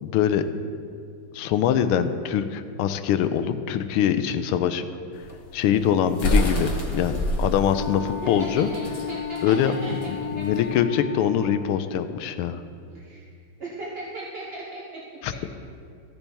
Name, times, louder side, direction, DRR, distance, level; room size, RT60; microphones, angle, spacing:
voice 1, 0.0-0.4 1.3-4.8 5.5-8.7 9.4-9.7 10.1-12.6 15.2-15.3, left 9 dB, 85° left, 10 dB, 1.5 m, -23 dB
sound 1, 5.1-10.7, left 1 dB, 60° left, 0.3 m, -27 dB
Wind instrument woodwind instrument, 7.6-11.9, left 7 dB, 30° left, 0.9 m, -33 dB
voice 2, 8.2-8.8 9.1-9.9 10.4-10.5 12.9-13.3 13.6-14.8, right 2 dB, 45° right, -6 dB, 0.8 m, -37 dB
14.0 x 7.0 x 3.4 m, 2.4 s
omnidirectional pair, 2.4 m